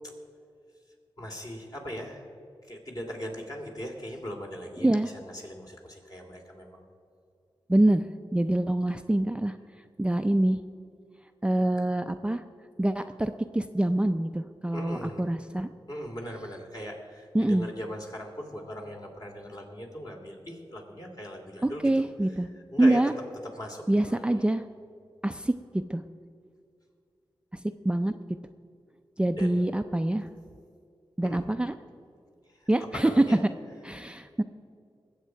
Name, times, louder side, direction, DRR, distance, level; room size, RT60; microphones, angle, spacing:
voice 1, 1.2-2.3 2.6-6.8 14.7-15.3 15.9-22.0 22.7-23.0 23.5-24.4 29.4-29.6 31.2-31.4 32.5-33.4, equal, 40° left, 0 dB, 2.9 m, -39 dB
voice 2, 7.7-9.6 10.0-10.6 11.4-12.4 12.8-15.7 17.3-17.7 21.6-22.5 22.8-23.1 23.9-24.6 25.2-26.0 27.5-28.1 29.2-30.3 31.2-31.7 32.7-33.1 33.8-34.4, right 1 dB, 10° right, 8 dB, 0.4 m, -25 dB
20.5 x 8.1 x 4.6 m, 2.4 s
cardioid pair, 65°, 9 cm